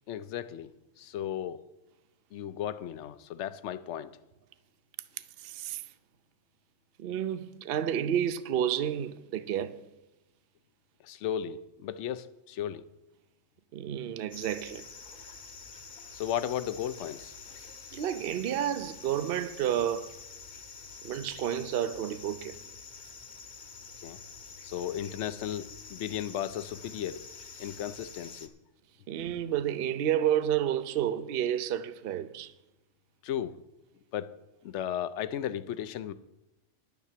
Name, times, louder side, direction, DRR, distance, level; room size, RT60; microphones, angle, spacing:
voice 1, 0.1-0.7 1.0-1.6 2.3-4.1 11.0-12.9 16.1-17.6 24.0-24.2 24.6-27.3 27.6-28.5 33.2-33.6 34.1-34.3 34.6-36.1, left 10 dB, 70° left, 0.9 m, -35 dB
voice 2, 5.4-5.8 7.0-9.8 13.7-14.9 17.9-20.1 21.0-22.6 29.1-32.5, right 10 dB, 55° right, 0.8 m, -30 dB
sound 1, 14.3-28.5, left 5 dB, 40° left, 1.0 m, -47 dB
10.5 x 7.3 x 7.4 m
omnidirectional pair, 1.3 m